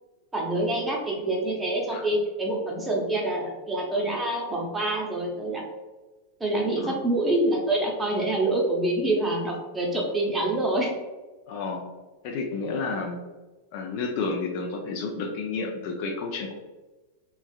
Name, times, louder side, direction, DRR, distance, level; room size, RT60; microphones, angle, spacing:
voice 1, 0.3-5.6 6.4-10.9, right 1 dB, 10° right, -2 dB, 0.8 m, -26 dB
voice 2, 11.5-11.8 12.2-13.2 13.7-16.5, left 4 dB, 45° left, 3 dB, 0.4 m, -31 dB
3.4 x 3.1 x 2.3 m, 1.2 s
figure-of-eight pair, 90°, 0 cm